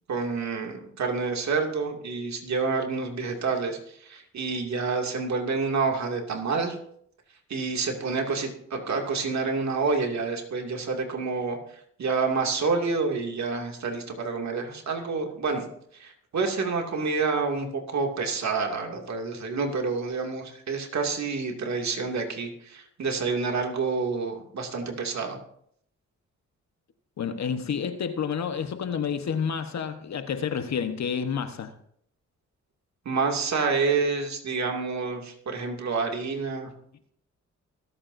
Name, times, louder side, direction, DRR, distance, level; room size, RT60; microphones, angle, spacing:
voice 1, 0.1-6.8 7.5-11.6 12.0-15.7 15.9-25.4 33.0-36.7, right 4 dB, 65° right, 2 dB, 2.5 m, -28 dB
voice 2, 27.2-31.7, left 7 dB, 65° left, 9 dB, 1.2 m, -29 dB
24.5 x 8.6 x 2.7 m, 0.69 s
cardioid pair, 70°, 30 cm